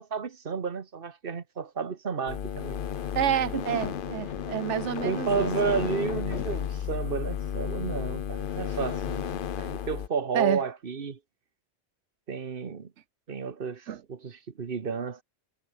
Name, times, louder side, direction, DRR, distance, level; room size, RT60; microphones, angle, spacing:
voice 1, 0.0-2.8 3.3-3.8 5.0-11.2 12.3-12.9 13.3-15.2, right 6 dB, 55° right, 1.4 m, -32 dB
sound 1, 2.3-10.1, left 9 dB, 55° left, 0.8 m, -33 dB
voice 2, 3.1-5.5 10.3-10.6 13.9-14.0, right 10 dB, 85° right, 1.1 m, -28 dB
sound 2, 3.6-6.9, left 6 dB, 90° left, 1.8 m, -43 dB
omnidirectional pair, 1.2 m